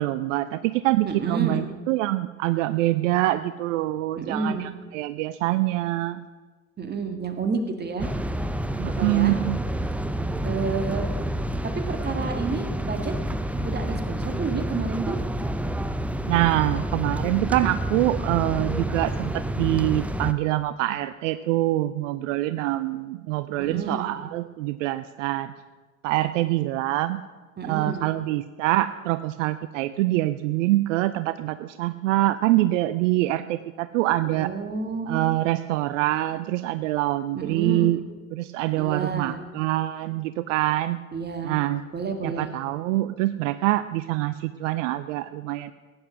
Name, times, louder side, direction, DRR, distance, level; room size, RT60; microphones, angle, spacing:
voice 1, 0.0-6.2 8.8-9.6 16.3-25.5 26.0-27.2 27.6-34.5 35.1-38.0 38.3-41.0 41.4-41.8 42.2-45.7, right 16 dB, 65° right, 14 dB, 0.6 m, -25 dB
voice 2, 1.1-1.7 4.2-4.7 6.8-8.1 8.8-9.4 10.4-11.1 11.9-13.1 13.6-15.2 23.6-24.1 27.6-28.1 34.2-35.3 37.4-38.0 38.8-39.4 41.1-41.6 41.9-42.5, right 4 dB, 25° right, 6 dB, 2.0 m, -30 dB
sound 1, 8.0-20.3, right 1 dB, 5° right, 0.5 m, -29 dB
15.5 x 9.7 x 6.2 m, 1.4 s
hypercardioid pair, 85°, 41 cm